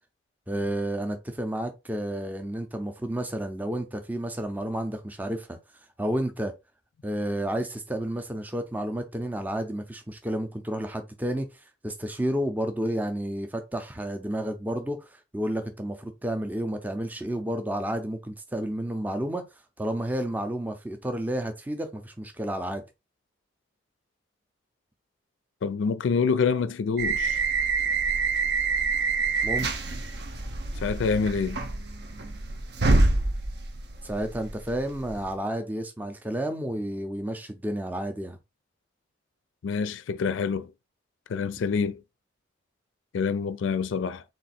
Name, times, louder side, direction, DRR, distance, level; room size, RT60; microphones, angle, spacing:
voice 1, 0.5-5.6 6.0-6.5 7.0-19.4 19.8-22.8 29.4-29.7 34.0-38.4, right 1 dB, 10° right, 0.5 m, -31 dB
voice 2, 25.6-27.4 30.8-31.6 39.6-40.7 41.3-42.0 43.1-44.2, left 5 dB, 80° left, 0.4 m, -26 dB
sound 1, 27.0-35.3, right 3 dB, 55° right, 0.6 m, -27 dB
3.8 x 2.4 x 4.2 m
head